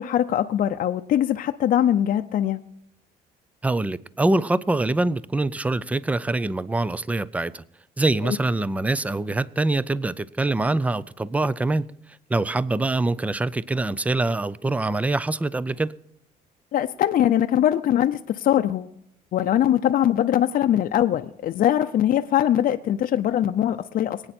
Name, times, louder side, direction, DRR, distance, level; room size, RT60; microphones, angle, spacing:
voice 1, 0.0-2.6 8.2-8.4 16.7-18.9 19.3-24.2, left 11 dB, 55° left, 0.6 m, -22 dB
voice 2, 3.6-7.6 8.0-11.9 12.3-15.9, right 2 dB, 10° right, 0.5 m, -24 dB
22.5 x 8.9 x 4.4 m
cardioid pair, 110°, 17 cm